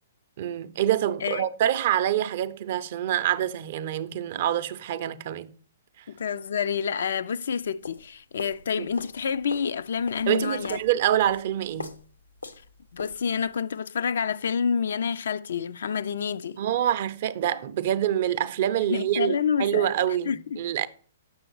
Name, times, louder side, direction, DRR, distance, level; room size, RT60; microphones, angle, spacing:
voice 1, 0.4-5.5 8.8-8.9 10.3-11.9 16.6-20.9, right 11 dB, 50° right, 0.4 m, -26 dB
voice 2, 6.1-10.8 12.9-16.6 18.9-19.9 20.3-20.6, left 6 dB, 65° left, 0.3 m, -28 dB
sound 1, 7.6-13.6, left 3 dB, 85° left, 0.7 m, -42 dB
7.3 x 6.2 x 3.0 m
figure-of-eight pair, 120°, 0 cm